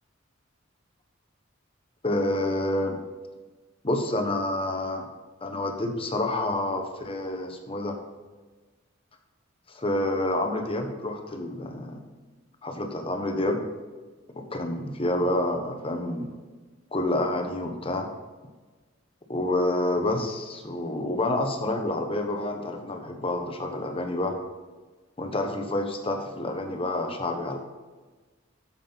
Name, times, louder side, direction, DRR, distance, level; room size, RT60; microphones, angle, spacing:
voice 1, 2.0-3.0 3.8-5.0 5.4-7.9 9.7-12.0 12.6-13.6 14.4-16.3 16.9-18.1 19.3-24.3 25.2-27.6, left 1 dB, 25° left, 4 dB, 1.1 m, -28 dB
8.4 x 7.3 x 4.0 m, 1.3 s
head